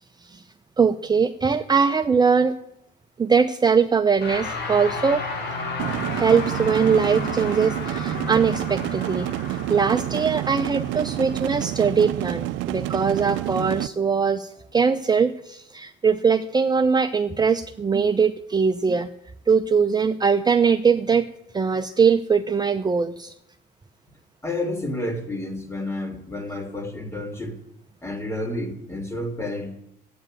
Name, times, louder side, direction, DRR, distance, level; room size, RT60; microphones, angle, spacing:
voice 1, 0.8-2.6 3.2-5.2 6.1-19.1 19.5-21.3 21.5-23.3, right 5 dB, 20° right, 7 dB, 0.7 m, -21 dB
sound 1, 4.2-13.7, left 3 dB, 60° left, 5.3 m, -33 dB
sound 2, 5.8-13.9, right 17 dB, 80° right, 0.5 m, -29 dB
voice 2, 24.4-27.6 28.0-29.7, left 1 dB, 15° left, 6 dB, 3.2 m, -30 dB
12.5 x 8.9 x 9.1 m, 0.76 s
cardioid pair, 100°, 19 cm